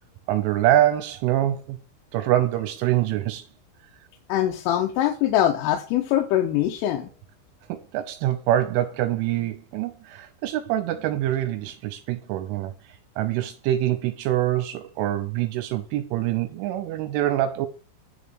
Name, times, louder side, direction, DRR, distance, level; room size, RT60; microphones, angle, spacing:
voice 1, 0.3-1.8 2.1-3.5 7.7-17.7, right 13 dB, 80° right, 3.1 m, -25 dB
voice 2, 4.3-7.1, left 12 dB, 80° left, 3.6 m, -23 dB
10.0 x 4.2 x 7.0 m
omnidirectional pair, 6.0 m